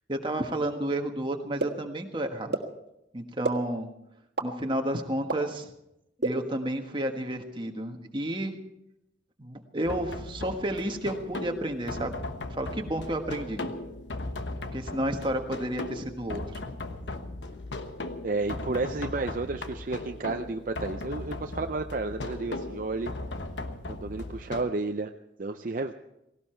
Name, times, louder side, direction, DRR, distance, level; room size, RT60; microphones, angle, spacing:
voice 1, 0.1-2.6 3.1-3.9 4.4-5.7 6.2-8.6 9.4-12.2 12.5-13.7 14.7-16.6, right 1 dB, 25° right, 4 dB, 1.5 m, -31 dB
sound 1, 1.6-1.7 2.5-2.6 3.4-3.5 4.4-4.5 5.3-5.4 6.2-6.3, right 3 dB, 75° right, 1.6 m, -26 dB
sound 2, 9.8-24.6, left 2 dB, 85° left, 1.1 m, -37 dB
voice 2, 18.2-23.1 23.9-25.1 25.4-25.9, right 3 dB, 50° right, 6 dB, 0.6 m, -31 dB
18.0 x 17.5 x 4.5 m, 0.86 s
head